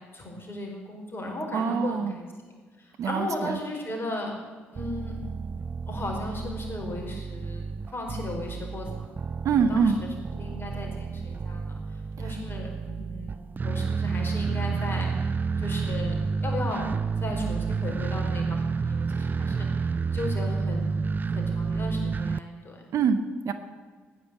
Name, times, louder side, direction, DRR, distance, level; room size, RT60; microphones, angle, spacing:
voice 1, 0.1-2.3 2.8-4.3 4.7-5.2 5.9-8.9 9.6-15.2 15.6-16.9 17.2-20.9 21.3-22.8, left 2 dB, 35° left, 1 dB, 5.0 m, -36 dB
voice 2, 1.5-2.1 3.0-3.6 9.4-10.0 22.9-23.5, right 6 dB, 55° right, 9 dB, 1.1 m, -25 dB
sound 1, 4.8-22.4, right 5 dB, 30° right, 0.4 m, -30 dB
15.0 x 10.0 x 7.8 m, 1.5 s
figure-of-eight pair, 45°, 6 cm